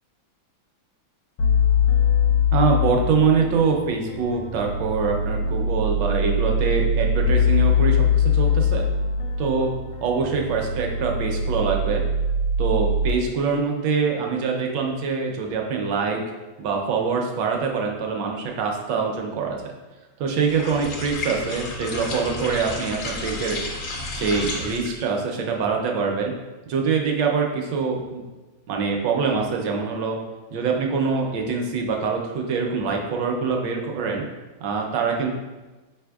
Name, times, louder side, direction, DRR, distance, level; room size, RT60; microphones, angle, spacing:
sound 1, 1.4-13.1, left 4 dB, 80° left, 1.3 m, -22 dB
voice 1, 2.5-8.9 9.4-9.7 10.0-12.0 12.6-16.2 16.6-19.6 20.2-23.6 24.2-26.3 26.7-28.2 28.7-30.2 30.5-34.2 34.6-35.3, right 5 dB, 75° right, 1 dB, 1.1 m, -24 dB
sound 2, 20.4-25.1, left 2 dB, 55° left, 0.9 m, -32 dB
5.2 x 3.4 x 2.2 m, 1.2 s
omnidirectional pair, 2.1 m